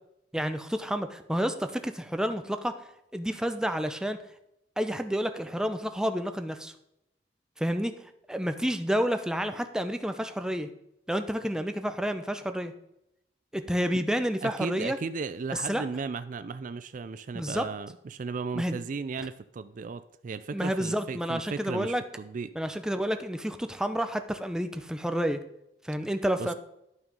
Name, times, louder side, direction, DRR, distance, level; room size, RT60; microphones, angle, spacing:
voice 1, 0.3-2.7 3.1-4.2 4.8-6.7 7.6-7.9 8.3-10.7 11.1-12.7 13.5-15.0 15.7-15.8 17.3-17.7 18.5-18.8 20.5-22.0 22.5-25.4 25.8-26.5, equal, 5° right, 8 dB, 0.6 m, -29 dB
voice 2, 14.4-22.5 26.4-26.5, right 4 dB, 45° right, 13 dB, 0.4 m, -35 dB
11.5 x 5.9 x 5.3 m, 0.83 s
head